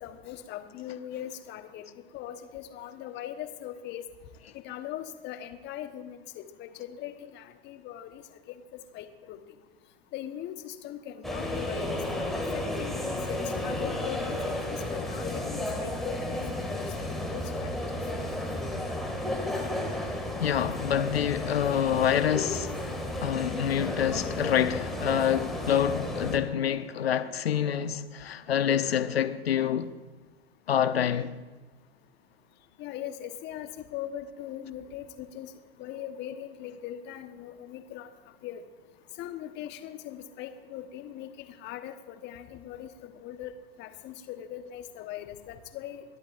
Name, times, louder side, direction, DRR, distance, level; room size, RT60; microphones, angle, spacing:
voice 1, 0.0-4.0 4.5-8.2 8.5-9.4 10.1-16.9 17.3-18.5 32.8-35.5 35.8-38.1 38.4-38.6 39.2-43.5 43.8-46.0, left 11 dB, 35° left, 1.3 m, -40 dB
sound 1, 11.2-26.4, left 1 dB, ahead, 2.2 m, -33 dB
voice 2, 20.4-22.9 23.2-29.9 30.7-31.3, left 9 dB, 75° left, 0.9 m, -27 dB
29.5 x 12.5 x 2.6 m
figure-of-eight pair, 95°, 31 cm